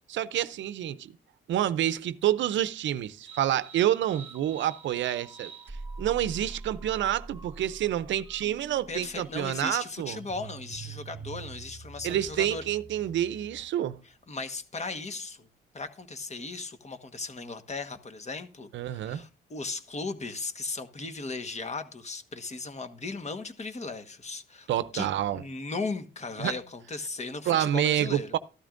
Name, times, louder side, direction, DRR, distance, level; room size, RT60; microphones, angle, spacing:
voice 1, 0.1-1.1 1.5-10.2 12.0-14.0 18.7-19.2 24.7-25.4 26.4-26.5 27.5-28.4, right 11 dB, 70° right, 0.6 m, -28 dB
sound 1, 3.2-13.8, right 4 dB, 10° right, 2.8 m, -45 dB
voice 2, 8.9-12.6 14.3-15.5 15.7-24.7 24.9-28.4, left 3 dB, 35° left, 1.4 m, -37 dB
13.5 x 12.5 x 2.6 m
cardioid pair, 90°, 20 cm